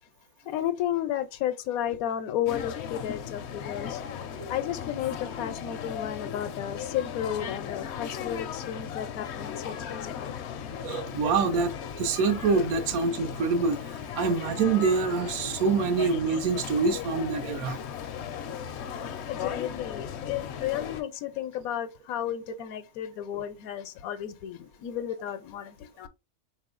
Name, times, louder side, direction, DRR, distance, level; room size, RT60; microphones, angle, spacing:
voice 1, 0.5-4.0 4.5-10.3 19.3-26.1, left 10 dB, 85° left, 1.0 m, -33 dB
sound 1, 2.5-21.0, left 8 dB, 65° left, 0.7 m, -37 dB
voice 2, 10.8-13.8 14.1-17.8 19.0-19.1, right 4 dB, 85° right, 1.1 m, -26 dB
4.1 x 3.0 x 2.4 m
omnidirectional pair, 1.5 m